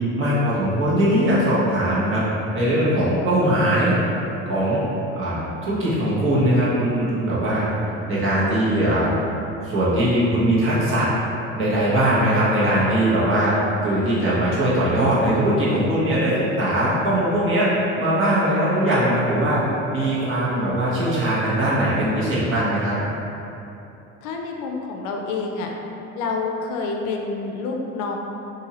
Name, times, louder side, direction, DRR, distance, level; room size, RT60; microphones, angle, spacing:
voice 1, 0.2-2.2 2.5-3.9 4.5-4.8 5.2-7.7 8.1-9.1 9.6-11.1 11.6-13.5 13.8-17.7 18.0-19.6 19.9-22.9, right 1 dB, 40° right, -9 dB, 1.2 m, -20 dB
voice 2, 24.2-25.7 26.1-28.2, left 4 dB, 65° left, 1 dB, 0.5 m, -28 dB
2.7 x 2.6 x 2.9 m, 2.9 s
supercardioid pair, 80°, 33 cm